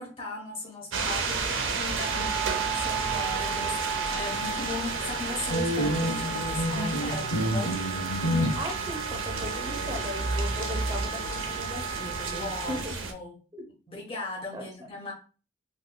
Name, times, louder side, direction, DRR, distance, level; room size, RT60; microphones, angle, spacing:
voice 1, 0.0-7.9 12.4-13.4 13.9-15.1, left 2 dB, 30° left, 1.1 m, -38 dB
sound 1, 0.9-13.1, right 4 dB, 90° right, 0.6 m, -32 dB
Wind instrument woodwind instrument, 2.0-12.9, right 5 dB, 45° right, 1.1 m, -36 dB
sound 2, 5.5-8.6, equal, 90° left, 0.8 m, -28 dB
voice 2, 8.5-12.9 14.5-14.7, equal, 20° right, 0.8 m, -38 dB
3.8 x 3.1 x 2.2 m
head